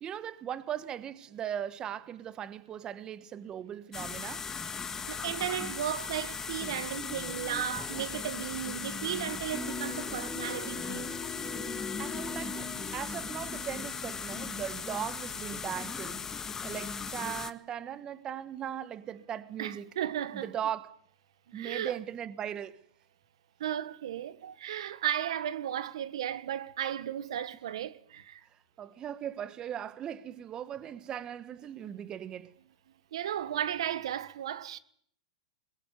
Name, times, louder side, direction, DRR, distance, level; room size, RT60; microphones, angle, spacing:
voice 1, 0.0-4.5 11.7-16.3 16.6-19.9 20.3-21.0 21.5-22.8 28.8-32.5, right 9 dB, 25° right, 1.3 m, -38 dB
sound 1, 3.9-17.5, left 5 dB, 15° left, 1.5 m, -38 dB
voice 2, 5.1-11.1 19.6-20.5 21.5-22.0 23.6-28.4 33.1-34.8, right 10 dB, 70° right, 1.5 m, -35 dB
sound 2, 9.5-14.7, left 2 dB, 5° right, 3.6 m, -41 dB
22.0 x 22.0 x 9.5 m
hypercardioid pair, 125°, 3 cm